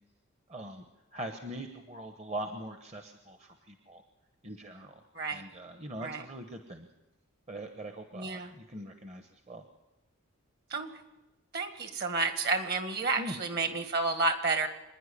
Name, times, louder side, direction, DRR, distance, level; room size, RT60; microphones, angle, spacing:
voice 1, 0.5-0.8 1.1-4.0 4.4-6.9 7.5-9.6 13.2-13.4, right 1 dB, 30° right, 6 dB, 1.1 m, -42 dB
voice 2, 8.1-8.5 10.7-10.9 11.5-14.7, right 3 dB, 45° right, 8 dB, 1.9 m, -30 dB
26.0 x 10.5 x 10.0 m, 1.0 s
head